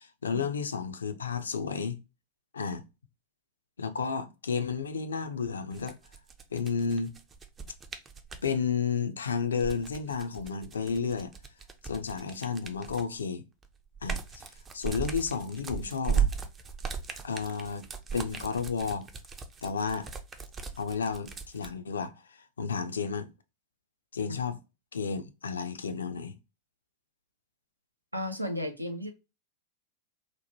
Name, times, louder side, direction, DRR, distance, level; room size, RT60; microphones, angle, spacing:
voice 1, 0.0-2.0 2.5-2.8 3.8-6.0 6.5-7.2 8.4-11.3 11.8-13.4 14.0-14.5 14.7-16.3 17.2-17.9 18.1-19.1 19.6-20.1 20.8-22.1 22.6-23.3 24.1-24.6 24.9-26.4, left 5 dB, 70° left, 0.3 m, -32 dB
sound 1, 5.7-8.5 9.4-13.2 13.6-21.7, right 6 dB, 20° right, 0.4 m, -36 dB
voice 2, 28.1-29.1, left 1 dB, 85° right, 0.4 m, -34 dB
2.9 x 2.1 x 2.6 m
figure-of-eight pair, 90°, 0 cm